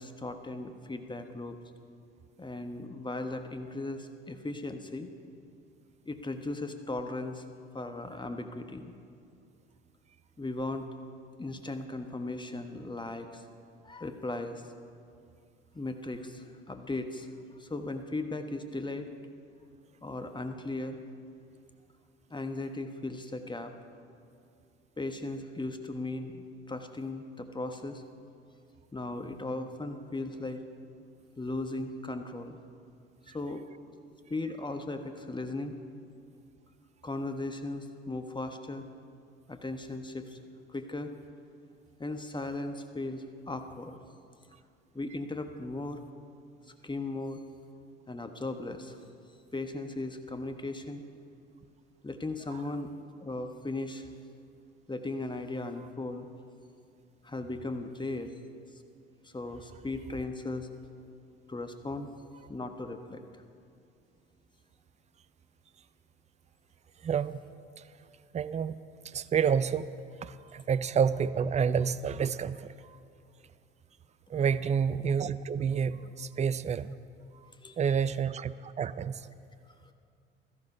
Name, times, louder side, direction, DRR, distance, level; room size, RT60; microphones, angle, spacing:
voice 1, 0.0-1.6 2.4-5.1 6.0-7.4 7.7-8.9 10.4-10.9 11.4-13.4 13.8-14.6 15.7-17.3 17.6-19.1 20.0-21.0 22.3-23.7 25.0-28.0 28.9-30.6 31.4-32.6 33.3-33.6 34.3-35.7 37.0-38.9 39.5-40.4 40.7-41.1 42.0-44.0 44.9-46.0 46.8-47.4 48.1-49.0 49.5-51.0 52.0-52.9 53.2-54.1 54.9-56.3 57.2-58.3 59.2-60.7 61.5-62.1 62.5-63.2 77.6-78.1, left 2 dB, 15° left, 7 dB, 1.2 m, -37 dB
voice 2, 67.0-67.4 67.8-67.9 68.3-69.9 70.2-73.0 74.3-76.9 77.8-79.3, right 7 dB, 20° right, 15 dB, 0.5 m, -29 dB
16.5 x 13.5 x 5.4 m, 2.4 s
hypercardioid pair, 60°, 31 cm